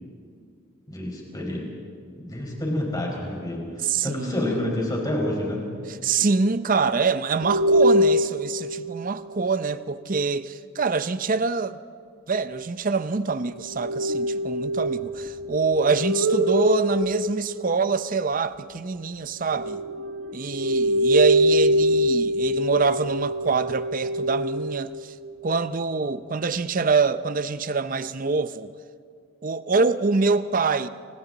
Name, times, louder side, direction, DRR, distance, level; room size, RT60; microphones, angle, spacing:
voice 1, 0.9-1.7 2.1-5.7, left 1 dB, 20° left, 5.0 m, -28 dB
voice 2, 3.8-4.6 6.0-11.8 12.3-19.8 20.3-25.1 25.4-28.7 29.4-30.9, right 4 dB, 40° right, 0.6 m, -25 dB
sound 1, 7.4-9.3 13.7-18.1 19.5-25.7, equal, 60° right, 1.2 m, -24 dB
30.0 x 26.0 x 4.0 m
head